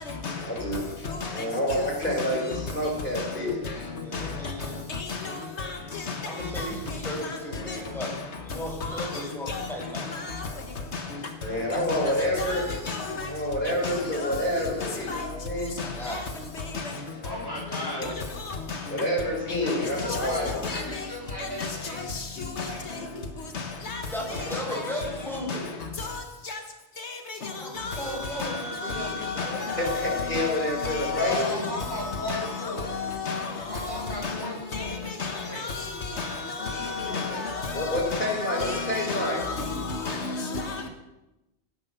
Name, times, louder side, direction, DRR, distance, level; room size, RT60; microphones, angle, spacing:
voice 1, 0.3-1.0 1.3-3.9 11.4-12.8 13.3-15.8 17.1-18.2 18.9-20.6 24.3-24.5 29.8-31.7 37.0-37.4 37.7-39.4, left 1 dB, 50° left, 5.3 m, -29 dB
voice 2, 4.0-4.8 6.2-8.1 8.4-10.1 15.8-16.2 22.9-23.3 23.9-25.7 27.4-29.6 33.9-34.2, equal, ahead, 5.5 m, -36 dB
voice 3, 5.6-6.0 6.6-6.7 8.8-9.1 9.5-9.7 9.9-10.2 11.9-12.0 12.5-13.3 13.8-13.9 14.2-14.4 15.1-15.3 16.1-16.2 16.7-16.8 18.0-18.1 19.7-19.8 20.1-20.3 20.6-20.8 21.6-21.7 22.6-22.7 23.9-24.0 24.5-24.6 25.5-25.6 26.0-26.1 26.5-26.6 27.8-28.0 28.4-34.0 34.2-34.4 34.7-34.9 35.2-40.8, left 4 dB, 75° left, 1.6 m, -32 dB
voice 4, 17.2-18.1 19.6-19.7 20.0-22.0 22.6-22.8 24.7-25.0 31.1-32.9 33.7-35.1 35.5-35.6 36.6-37.6 38.7-39.1, left 1 dB, 20° right, 3.9 m, -36 dB
16.0 x 10.0 x 6.9 m
omnidirectional pair, 1.2 m